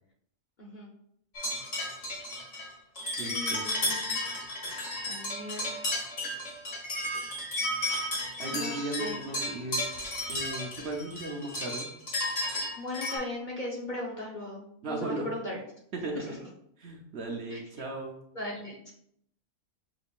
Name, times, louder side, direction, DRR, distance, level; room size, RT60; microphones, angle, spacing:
voice 1, 0.6-0.9 3.2-4.2 5.0-5.8 8.5-9.1 12.8-15.6 16.1-16.5 17.5-17.6 18.3-18.9, left 1 dB, 45° left, -3 dB, 0.7 m, -38 dB
sound 1, 1.3-13.2, left 1 dB, 60° left, 1.6 m, -33 dB
voice 2, 3.2-3.7 8.4-9.9 10.3-11.9 14.8-15.3 15.9-16.4 16.8-18.2, right 2 dB, 60° right, 1 dB, 0.8 m, -36 dB
6.1 x 3.5 x 2.4 m, 0.71 s
omnidirectional pair, 1.4 m